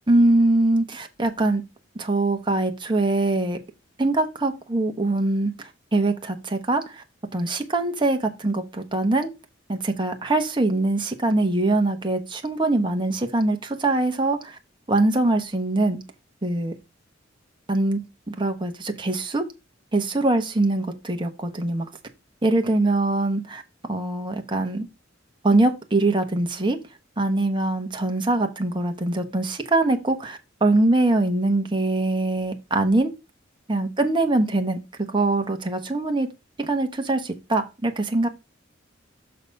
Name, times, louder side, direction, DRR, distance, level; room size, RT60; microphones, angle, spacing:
voice 1, 0.1-1.6 1.9-3.6 4.0-7.0 7.3-9.3 9.7-14.6 14.9-16.0 16.4-16.7 17.7-18.0 18.3-19.4 19.9-21.9 22.4-23.6 23.9-24.9 25.4-26.8 27.2-33.1 33.7-34.8 35.1-36.3 36.6-38.3, right 2 dB, 25° right, 1.2 m, -23 dB
6.6 x 4.2 x 5.2 m
head